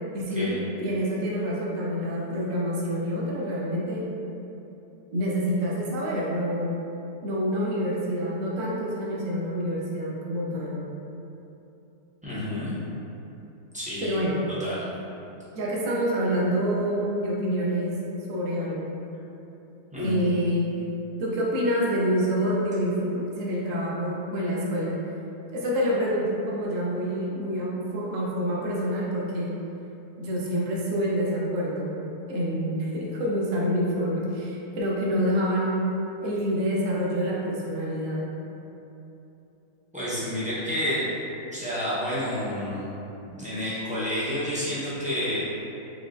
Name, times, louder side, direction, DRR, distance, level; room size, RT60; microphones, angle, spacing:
voice 1, 0.1-4.1 5.1-6.7 7.2-10.8 14.0-14.4 15.5-18.0 18.3-19.0 20.0-20.7 21.2-25.0 25.5-29.5 30.2-35.8 36.2-38.3, equal, 60° right, -4 dB, 1.0 m, -27 dB
voice 2, 12.2-12.7 13.7-14.2 14.6-14.9 19.9-20.2 39.9-41.0 41.5-42.8 43.3-45.4, left 1 dB, 10° right, -11 dB, 0.4 m, -29 dB
4.6 x 3.1 x 2.6 m, 2.9 s
omnidirectional pair, 1.7 m